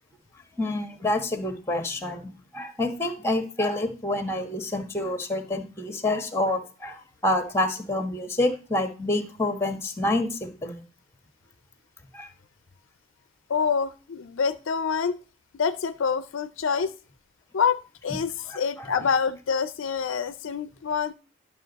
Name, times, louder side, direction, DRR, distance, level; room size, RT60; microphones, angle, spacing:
voice 1, 0.6-10.8 12.1-12.3 18.5-18.9, left 1 dB, 10° left, 7 dB, 1.2 m, -28 dB
voice 2, 13.5-15.2 15.5-16.9 17.5-21.1, left 6 dB, 65° left, 12 dB, 0.5 m, -26 dB
11.5 x 6.1 x 4.0 m, 0.35 s
head